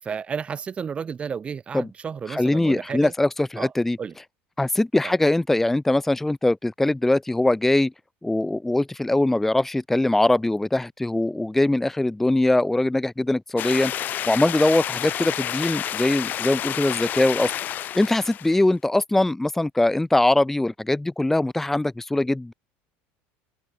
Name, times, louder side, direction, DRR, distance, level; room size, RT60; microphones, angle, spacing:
voice 1, 0.0-3.1 3.6-3.7 4.0-4.2 5.0-5.1, right 6 dB, 25° right, 5.3 m, -32 dB
voice 2, 2.3-4.0 4.6-7.9 8.2-13.9 14.3-17.5 17.9-22.5, left 2 dB, 5° left, 0.9 m, -22 dB
sound 1, 13.6-18.6, left 11 dB, 35° left, 1.1 m, -29 dB
cardioid pair, 150°, 5 cm